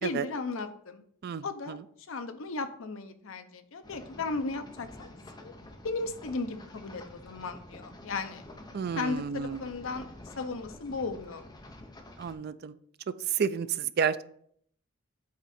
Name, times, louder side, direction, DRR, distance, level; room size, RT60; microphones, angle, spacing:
voice 1, 0.0-1.0 1.4-1.8 2.1-5.1 5.4-5.5 5.8-8.4 8.9-10.1 10.4-11.4, left 3 dB, 65° left, 9 dB, 0.6 m, -35 dB
voice 2, 1.2-1.8 8.7-9.7 12.2-12.8 13.1-14.2, right 7 dB, 45° right, 14 dB, 0.3 m, -31 dB
sound 1, 3.8-12.4, left 1 dB, 20° left, 0.7 m, -49 dB
8.5 x 3.6 x 4.2 m, 0.65 s
head